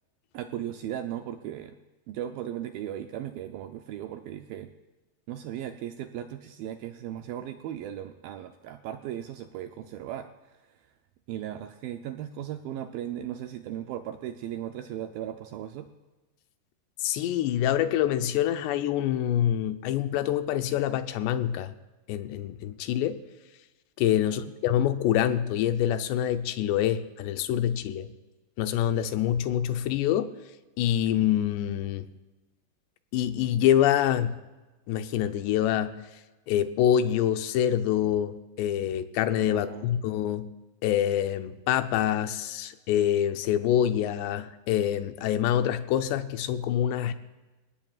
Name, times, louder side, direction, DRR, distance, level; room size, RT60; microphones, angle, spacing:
voice 1, 0.3-1.8 2.1-4.7 5.3-10.6 11.3-15.9 24.2-24.4 39.5-39.9, right 11 dB, 80° right, 6 dB, 2.1 m, -37 dB
voice 2, 17.0-21.7 22.1-23.2 24.0-28.1 28.6-30.3 30.8-32.1 33.1-34.4 34.9-36.0 36.5-40.5 40.8-47.1, left 11 dB, 90° left, 9 dB, 3.0 m, -26 dB
28.5 x 18.0 x 2.4 m, 1.2 s
omnidirectional pair, 4.8 m